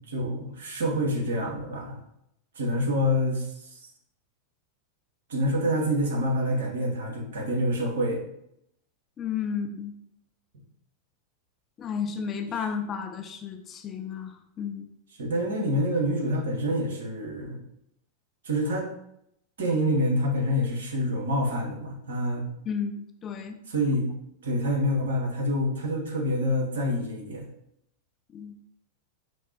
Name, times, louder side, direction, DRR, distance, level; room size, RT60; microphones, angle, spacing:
voice 1, 0.0-2.0 2.6-3.5 5.3-8.2 15.2-17.6 18.4-18.9 19.6-22.5 23.7-24.1 24.4-27.5, equal, 65° right, 0 dB, 1.0 m, -27 dB
voice 2, 9.2-9.9 11.8-14.9 22.7-23.6 28.3-28.5, left 6 dB, 25° left, 7 dB, 0.3 m, -33 dB
5.1 x 3.1 x 2.8 m, 0.78 s
figure-of-eight pair, 90°, 0 cm